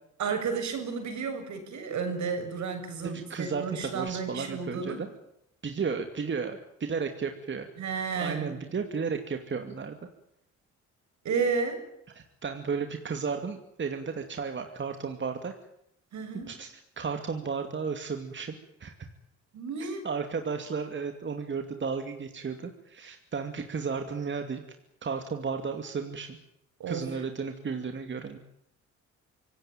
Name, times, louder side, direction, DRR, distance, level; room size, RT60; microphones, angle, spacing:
voice 1, 0.2-5.0 7.8-8.6 11.2-11.8 16.1-16.6 19.5-20.0 26.8-27.1, right 5 dB, 70° right, 6 dB, 7.0 m, -32 dB
voice 2, 3.0-5.1 5.6-7.7 8.2-10.0 12.1-15.5 16.5-18.9 20.0-24.6 25.0-26.4 26.9-28.4, right 5 dB, 40° right, 6 dB, 2.5 m, -33 dB
26.0 x 17.5 x 9.2 m, 0.79 s
cardioid pair, 90°, 30 cm